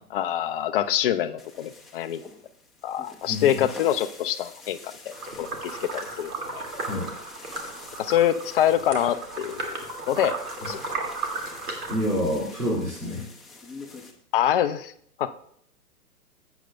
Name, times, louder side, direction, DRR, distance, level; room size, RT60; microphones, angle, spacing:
voice 1, 0.1-2.2 2.8-4.8 5.1-6.7 8.0-9.7 10.1-10.4 10.7-10.8 14.3-14.9 15.2-15.3, left 11 dB, 40° left, 9 dB, 0.4 m, -25 dB
sound 1, 1.4-14.1, left 3 dB, ahead, 0.8 m, -46 dB
voice 2, 3.3-3.6 6.9-7.1 10.6-10.7 11.9-13.2, equal, 90° right, -5 dB, 2.4 m, -27 dB
sound 2, 5.1-12.0, right 3 dB, 70° right, 2.2 m, -35 dB
15.5 x 7.9 x 2.2 m, 0.67 s
figure-of-eight pair, 115°, 46 cm